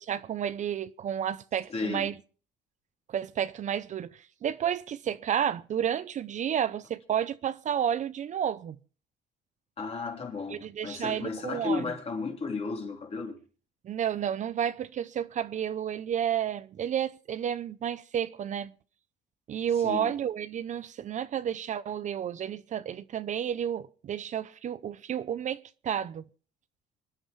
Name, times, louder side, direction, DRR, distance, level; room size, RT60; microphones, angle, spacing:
voice 1, 0.1-2.1 3.1-8.8 10.5-11.8 13.8-18.7 19.5-26.2, right 9 dB, 45° right, 0.6 m, -31 dB
voice 2, 1.7-2.1 9.8-13.4 19.8-20.1, left 4 dB, 35° left, 3.8 m, -34 dB
27.0 x 10.0 x 3.2 m
cardioid pair, 110°, 17 cm